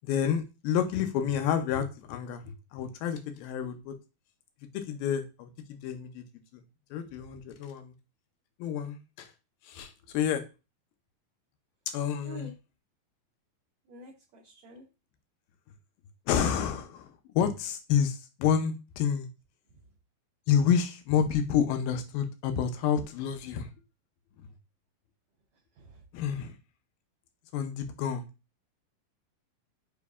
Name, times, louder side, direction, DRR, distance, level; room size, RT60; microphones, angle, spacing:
voice 1, 0.0-3.9 4.7-6.2 6.9-7.9 8.6-9.3 9.6-10.4 11.9-12.5 16.3-19.3 20.5-23.7 26.1-26.6 27.5-28.3, left 8 dB, 80° left, 7 dB, 2.2 m, -29 dB
voice 2, 13.9-14.8, right 2 dB, 85° right, -1 dB, 1.5 m, -46 dB
6.7 x 2.6 x 2.3 m, 0.29 s
omnidirectional pair, 4.2 m